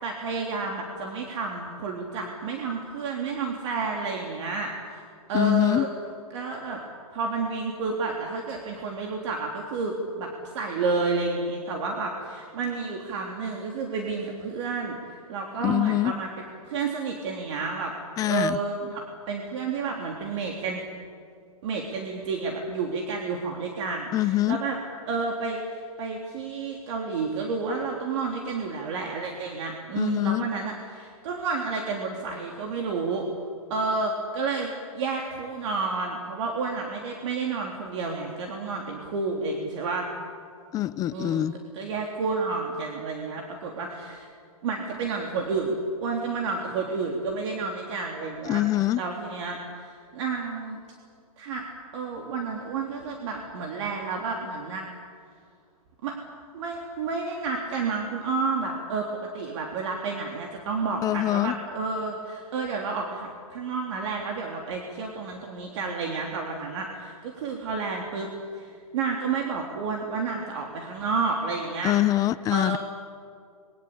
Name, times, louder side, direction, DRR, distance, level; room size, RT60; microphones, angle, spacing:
voice 1, 0.0-5.9 6.3-6.8 7.1-10.3 10.5-16.3 16.6-17.9 18.2-20.8 21.6-24.8 25.1-33.3 33.7-40.1 41.1-41.5 41.7-44.3 44.6-48.6 49.0-50.8 51.4-51.7 51.9-54.9 56.0-56.2 56.5-71.9 72.5-72.8, right 4 dB, 50° right, 1 dB, 3.4 m, -30 dB
voice 2, 5.3-5.9 15.6-16.1 18.2-18.6 24.1-24.6 30.0-30.4 40.7-41.5 48.5-49.0 61.0-61.5 71.8-72.8, left 14 dB, 20° left, 16 dB, 0.5 m, -24 dB
26.0 x 22.5 x 8.5 m, 2.3 s
hypercardioid pair, 135°, 19 cm